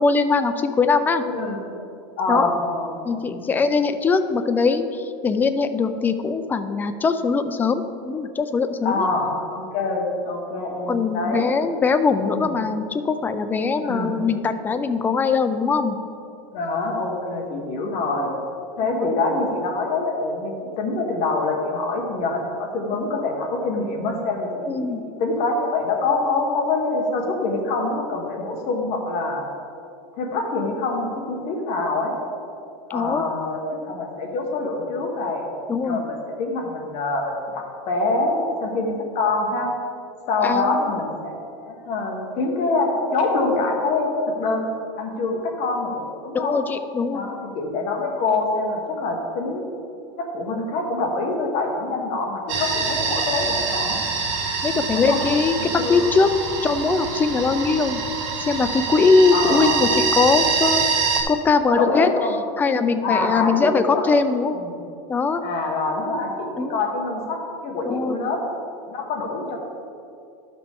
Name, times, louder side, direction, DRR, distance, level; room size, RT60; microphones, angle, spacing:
voice 1, 0.0-1.2 2.3-2.5 3.0-9.1 10.9-16.0 18.8-19.1 24.6-25.0 32.9-33.3 35.7-36.0 40.4-40.8 46.3-47.2 54.6-56.3 56.6-58.0 58.5-60.8 61.3-62.1 62.6-64.6 65.1-65.5 66.6-66.8 67.8-68.2, left 4 dB, 10° left, 9 dB, 0.3 m, -21 dB
voice 2, 1.3-1.7 2.2-2.9 3.2-3.5 8.8-11.5 12.3-12.5 13.8-14.2 16.5-18.3 18.8-29.4 30.2-32.1 32.9-35.5 35.8-39.7 40.3-44.7 45.0-46.6 47.1-49.7 50.2-54.0 54.9-55.2 55.6-56.1 59.3-59.8 61.7-62.4 63.0-64.1 64.5-64.7 65.4-68.4 68.9-69.6, left 3 dB, 45° left, 1 dB, 1.5 m, -25 dB
sound 1, 52.5-61.2, right 5 dB, 65° right, 1.6 m, -25 dB
12.0 x 6.0 x 3.6 m, 2.6 s
supercardioid pair, 150°, 16 cm